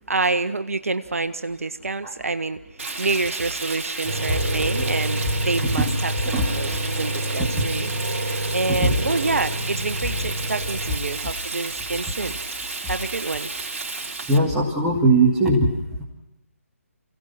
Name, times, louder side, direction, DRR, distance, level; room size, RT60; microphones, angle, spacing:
voice 1, 0.1-7.9 8.5-12.4 12.9-13.5, right 3 dB, 65° right, 9 dB, 1.3 m, -27 dB
Frying (food), 2.8-14.4, right 3 dB, 50° right, 4.5 m, -32 dB
sound 1, 4.0-11.0, right 1 dB, 30° right, 5.3 m, -28 dB
voice 2, 14.3-15.7, right 2 dB, 5° right, -6 dB, 2.7 m, -19 dB
28.5 x 17.5 x 6.0 m, 0.94 s
figure-of-eight pair, 150°, 8 cm